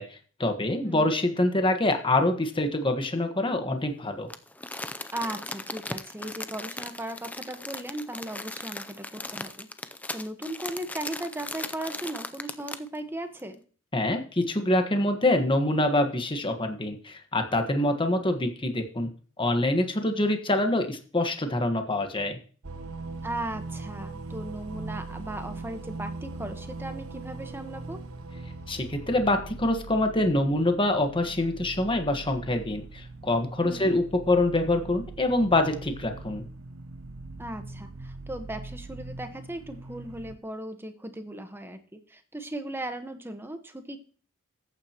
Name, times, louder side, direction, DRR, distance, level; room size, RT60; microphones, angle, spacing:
voice 1, 0.0-4.3 13.9-19.1 19.4-22.4 28.7-36.5, left 1 dB, 25° left, 6 dB, 1.4 m, -25 dB
voice 2, 0.8-1.1 5.1-9.7 10.1-13.6 23.2-28.0 33.6-33.9 37.4-44.0, right 1 dB, 10° right, 7 dB, 1.2 m, -37 dB
Crumpling crinkling, 4.3-13.0 13.4-13.5, left 2 dB, 5° left, 0.5 m, -38 dB
sound 1, 22.6-40.4, right 3 dB, 80° right, 1.0 m, -41 dB
13.5 x 9.0 x 3.0 m, 0.41 s
head